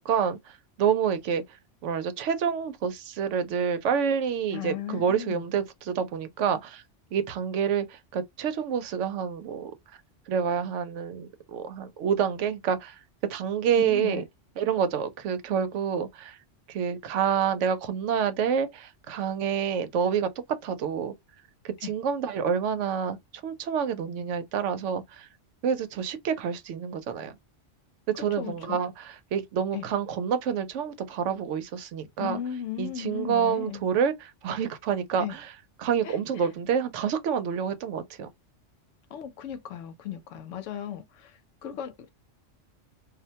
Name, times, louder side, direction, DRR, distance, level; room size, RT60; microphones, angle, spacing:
voice 1, 0.0-1.4 1.8-6.8 7.1-9.7 10.3-13.0 13.3-14.2 14.6-16.4 16.7-20.3 20.6-21.1 21.6-23.2 23.4-25.3 25.6-27.4 28.1-32.4 32.8-35.5 35.8-38.3, right 7 dB, 80° right, 0.9 m, -28 dB
voice 2, 4.5-5.4 13.8-14.2 21.8-21.9 28.4-28.8 29.7-29.9 32.2-33.8 35.2-35.3 36.0-36.5 39.1-42.1, left 10 dB, 85° left, 1.0 m, -36 dB
2.4 x 2.1 x 2.7 m
omnidirectional pair, 1.2 m